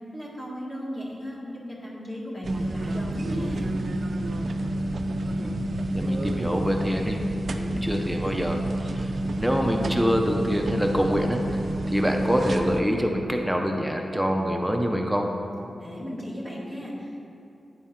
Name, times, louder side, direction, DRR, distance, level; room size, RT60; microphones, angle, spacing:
voice 1, 0.1-3.7 15.7-17.2, equal, 20° left, -6 dB, 1.6 m, -36 dB
sound 1, 2.4-12.8, right 1 dB, 60° right, 0.3 m, -29 dB
voice 2, 5.9-7.2 7.5-11.4 11.9-15.3, equal, 5° right, 2 dB, 0.5 m, -26 dB
8.9 x 3.6 x 4.3 m, 2.6 s
wide cardioid pair, 90°, 0 cm